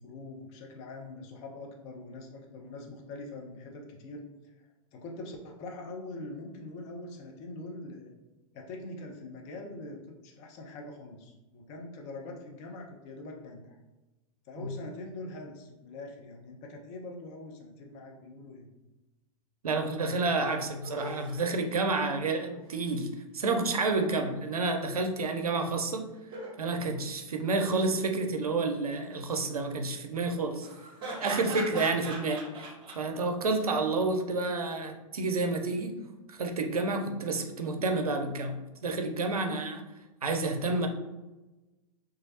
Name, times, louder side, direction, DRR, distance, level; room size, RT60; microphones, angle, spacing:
voice 1, 0.0-4.7 4.9-8.1 8.5-13.8 14.5-18.7 31.7-32.0, left 2 dB, 40° left, 1 dB, 0.6 m, -43 dB
voice 2, 19.6-26.1 26.6-30.7 31.2-36.0 36.3-39.8 40.2-40.9, right 3 dB, 85° right, 5 dB, 0.4 m, -30 dB
sound 1, 20.0-20.1 20.4-20.5 20.8-21.4 22.5-22.9 26.1-26.7 27.6-27.9 30.6-33.0 33.5-33.7, right 2 dB, 30° right, 1.4 m, -41 dB
3.1 x 2.3 x 2.8 m, 1.1 s
figure-of-eight pair, 105°, 18 cm